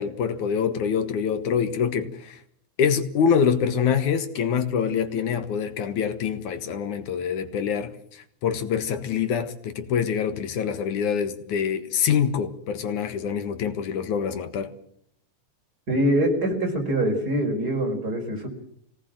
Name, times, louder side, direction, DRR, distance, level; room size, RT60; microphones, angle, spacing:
voice 1, 0.0-2.4 2.8-14.7, left 7 dB, 70° left, 2.9 m, -25 dB
voice 2, 15.9-18.5, right 1 dB, 30° right, 5.4 m, -24 dB
24.5 x 18.5 x 7.6 m
omnidirectional pair, 3.7 m